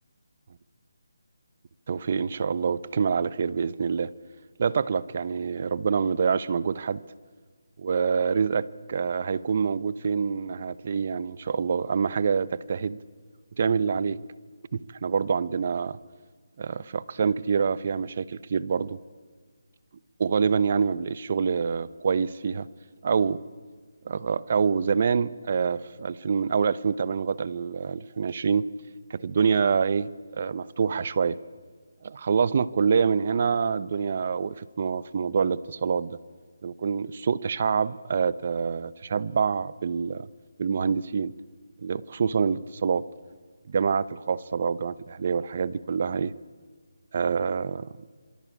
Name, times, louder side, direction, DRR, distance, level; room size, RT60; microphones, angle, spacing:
voice 1, 1.9-4.1 4.6-7.0 7.8-13.0 13.6-14.2 14.7-16.0 16.6-19.0 20.2-22.7 23.0-23.4 24.0-28.7 29.1-31.4 32.0-36.2 36.6-40.3 40.6-41.3 41.8-43.0 43.7-46.3 47.1-47.9, right 6 dB, 45° right, 18 dB, 0.9 m, -26 dB
27.5 x 23.0 x 8.6 m, 1.5 s
figure-of-eight pair, 165°, 0 cm